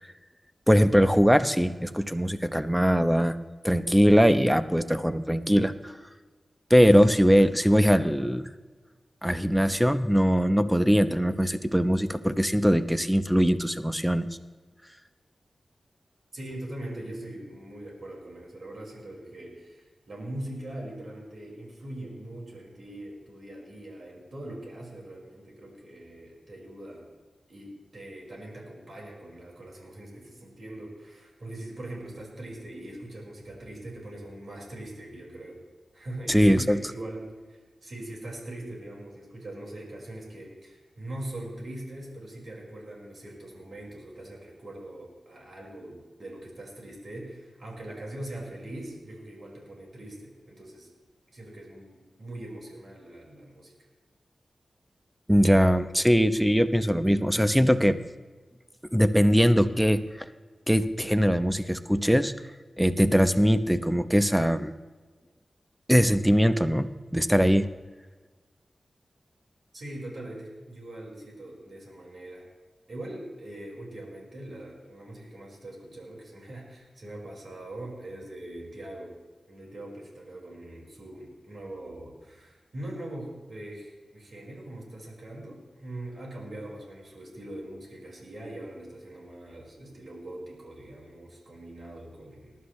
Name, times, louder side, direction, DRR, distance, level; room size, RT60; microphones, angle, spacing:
voice 1, 0.7-3.4 3.6-6.1 6.7-8.5 9.2-14.3 36.3-36.8 55.3-58.0 58.9-60.3 60.7-62.3 62.8-64.7 65.9-67.7, equal, 5° right, 11 dB, 0.8 m, -21 dB
voice 2, 16.3-27.0 27.5-35.6 35.9-37.2 37.5-50.9 51.3-53.7 69.7-72.5 72.9-79.1 79.5-92.6, right 1 dB, 65° right, -2 dB, 5.1 m, -41 dB
21.5 x 11.5 x 3.2 m, 1.3 s
cardioid pair, 55°, 0 cm